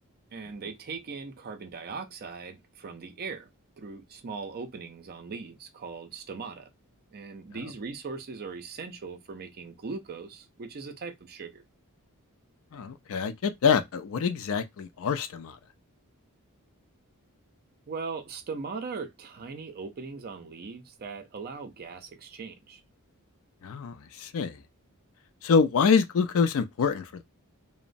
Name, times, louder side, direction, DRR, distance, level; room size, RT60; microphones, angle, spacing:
voice 1, 0.3-3.5 3.8-6.7 7.1-11.6 17.9-22.8, right 4 dB, 45° right, 0.5 m, -39 dB
voice 2, 12.7-15.5 23.6-24.6 25.4-27.0, left 5 dB, 65° left, 0.4 m, -25 dB
2.9 x 2.0 x 2.5 m
head